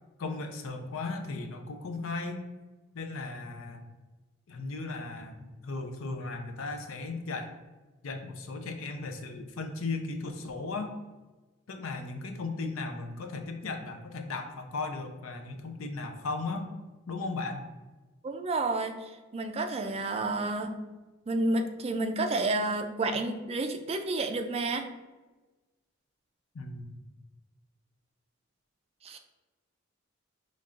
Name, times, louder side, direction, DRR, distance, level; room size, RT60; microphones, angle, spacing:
voice 1, 0.2-2.4 2.9-3.9 4.5-7.5 8.0-10.9 11.7-16.7 17.1-17.7 26.5-27.0, left 3 dB, 75° left, 6 dB, 0.5 m, -36 dB
voice 2, 18.2-20.8 21.3-24.8 29.0-29.2, right 2 dB, 30° right, 6 dB, 0.4 m, -30 dB
5.3 x 3.2 x 2.4 m, 1.2 s
head